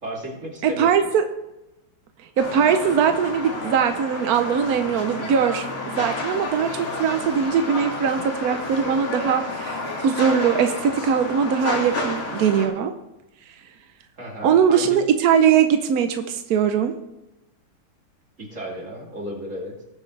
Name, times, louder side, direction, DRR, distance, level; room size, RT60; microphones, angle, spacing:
voice 1, 0.0-0.9 14.2-15.0 18.4-19.7, equal, 35° right, -3 dB, 3.2 m, -33 dB
voice 2, 0.6-1.2 2.4-12.9 14.4-16.9, right 7 dB, 70° right, 7 dB, 0.8 m, -21 dB
sound 1, 2.4-12.7, left 2 dB, 70° left, 3.0 m, -30 dB
20.0 x 7.4 x 3.3 m, 0.93 s
omnidirectional pair, 2.4 m